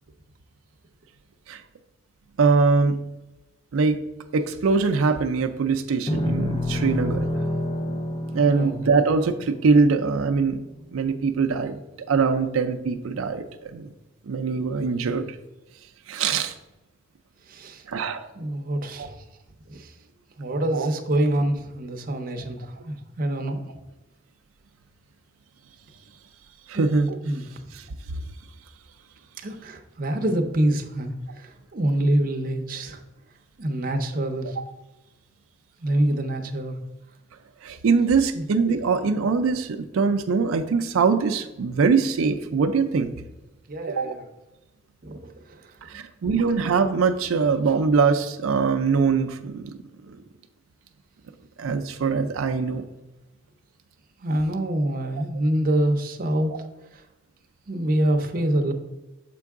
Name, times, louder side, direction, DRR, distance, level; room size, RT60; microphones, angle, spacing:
voice 1, 2.4-3.0 3.7-4.0 4.3-7.3 8.3-10.6 10.9-11.8 12.1-13.9 14.3-15.4 16.1-16.6 17.9-18.3 19.0-19.1 20.7-20.9 22.1-22.2 26.7-27.2 27.7-28.2 37.6-43.1 43.9-44.2 45.8-49.8 50.1-50.2 51.6-52.8, right 4 dB, 90° right, 7 dB, 0.4 m, -22 dB
sound 1, 6.1-10.5, left 1 dB, 25° left, 0.5 m, -29 dB
voice 2, 17.5-17.8 18.4-19.1 19.7-19.9 20.4-23.7 26.7-26.8 27.2-27.4 29.4-33.0 33.6-34.6 35.8-36.8 38.3-38.4 43.7-44.2 45.0-45.6 54.2-56.5 57.7-58.7, right 1 dB, 45° right, 4 dB, 0.6 m, -25 dB
6.8 x 4.5 x 3.5 m, 1.0 s
head